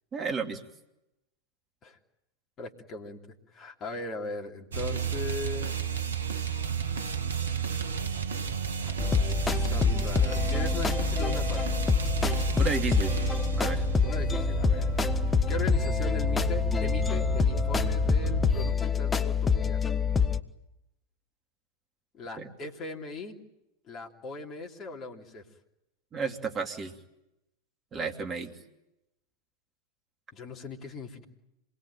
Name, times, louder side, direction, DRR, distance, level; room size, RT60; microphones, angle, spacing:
voice 1, 0.1-0.6 12.6-13.2 13.6-13.8 22.4-22.5 26.1-26.9 27.9-28.5, right 5 dB, 25° right, 4 dB, 3.0 m, -32 dB
voice 2, 2.6-3.2 3.5-5.9 8.8-11.8 14.0-14.9 15.5-19.8 22.1-23.3 23.9-25.4 30.3-31.2, left 4 dB, 30° left, 0 dB, 3.3 m, -39 dB
sound 1, 4.7-18.8, right 8 dB, 70° right, 1.3 m, -32 dB
sound 2, 9.0-20.4, left 6 dB, 15° left, 1.1 m, -26 dB
27.0 x 20.5 x 9.1 m, 0.89 s
figure-of-eight pair, 90°, 0 cm